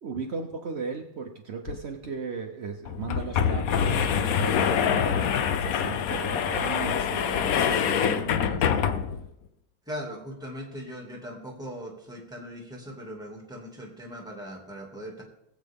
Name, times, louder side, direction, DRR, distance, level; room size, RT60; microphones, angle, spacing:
voice 1, 0.0-8.7, right 5 dB, 70° right, 3 dB, 0.6 m, -36 dB
sound 1, 1.7-1.8 2.0-2.1 2.9-9.3, left 8 dB, 80° left, 0.8 m, -25 dB
voice 2, 9.9-15.2, equal, ahead, 0 dB, 2.1 m, -39 dB
19.5 x 7.9 x 3.6 m, 0.83 s
omnidirectional pair, 2.3 m